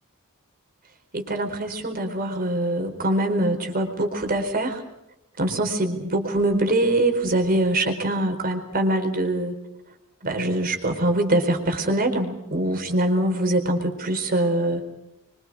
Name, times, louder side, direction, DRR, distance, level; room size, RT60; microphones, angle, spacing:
voice 1, 1.1-4.8 5.4-9.5 10.2-14.8, right 1 dB, 40° right, 5 dB, 4.4 m, -23 dB
27.5 x 24.5 x 4.9 m, 0.90 s
head